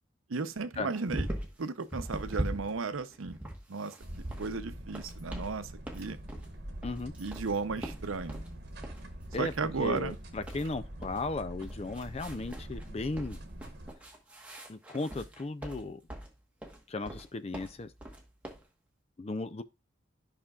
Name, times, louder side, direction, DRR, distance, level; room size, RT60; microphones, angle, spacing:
voice 1, 0.3-1.3 1.6-3.4 3.7-4.0 4.4-6.2 7.2-8.4 9.4-10.2, right 4 dB, 90° right, 0.7 m, -34 dB
sound 1, 0.9-1.6 1.9-4.5 4.9-5.5 5.9-6.5 6.8-8.5 8.8-9.1 9.3-9.6 9.9-11.3 11.6-12.9 13.2-16.4 16.6-17.3 17.5-18.6, right 1 dB, 5° right, 1.2 m, -41 dB
sound 2, 4.0-13.9, right 1 dB, 50° right, 1.3 m, -44 dB
voice 2, 6.8-7.1 9.3-9.5 9.8-13.4 14.7-16.0 16.9-17.9 19.2-19.6, left 3 dB, 30° left, 0.4 m, -36 dB
11.0 x 5.8 x 2.4 m
head